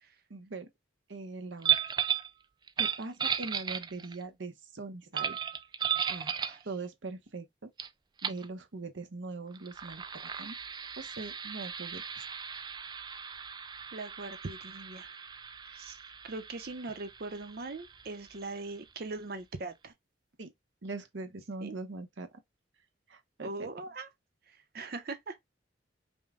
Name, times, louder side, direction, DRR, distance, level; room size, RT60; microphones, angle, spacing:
voice 1, 0.3-0.7 1.1-1.8 2.8-5.4 6.1-6.3 6.6-7.7 8.2-10.6 11.0-12.0 20.4-20.5 20.8-22.4 23.1-23.7, right 3 dB, 85° right, 0.9 m, -41 dB
sound 1, 1.6-2.3 2.7-4.2 5.1-6.6 7.8-7.9 8.2-8.4 9.5-18.8, right 8 dB, 25° right, 0.3 m, -35 dB
voice 2, 13.9-15.2 15.7-16.0 16.2-19.9 21.6-21.7 23.4-24.1 24.7-25.4, right 3 dB, 55° right, 0.7 m, -40 dB
5.3 x 2.2 x 3.6 m
head